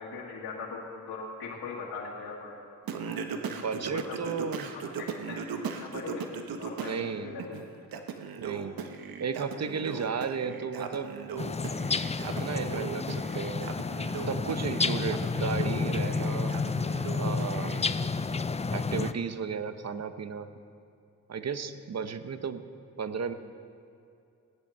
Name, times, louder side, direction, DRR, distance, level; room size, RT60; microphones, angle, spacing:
voice 1, 0.0-2.6 3.8-4.2 4.7-6.3 6.6-7.5, left 4 dB, 80° left, -4 dB, 2.0 m, -40 dB
Singing, 2.9-7.0 7.4-17.8, right 6 dB, 70° right, 1.2 m, -38 dB
voice 2, 3.4-4.7 6.8-7.4 8.4-8.8 9.2-11.1 12.2-13.7 14.2-16.5 17.2-18.1 18.7-20.5 21.3-22.6 23.0-23.3, right 6 dB, 45° right, 10 dB, 1.0 m, -34 dB
sound 1, 11.4-19.1, left 4 dB, 20° left, 0.5 m, -30 dB
17.0 x 10.5 x 5.6 m, 2.5 s
supercardioid pair, 50°, 37 cm